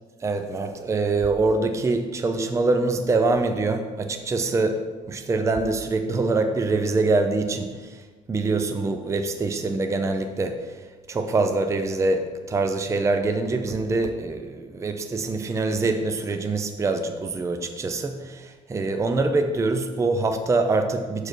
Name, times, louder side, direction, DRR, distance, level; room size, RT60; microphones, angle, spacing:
voice 1, 0.2-8.0 8.3-10.8 11.1-21.3, right 3 dB, 15° right, 7 dB, 0.5 m, -24 dB
6.4 x 4.7 x 4.4 m, 1.4 s
cardioid pair, 110°, 17 cm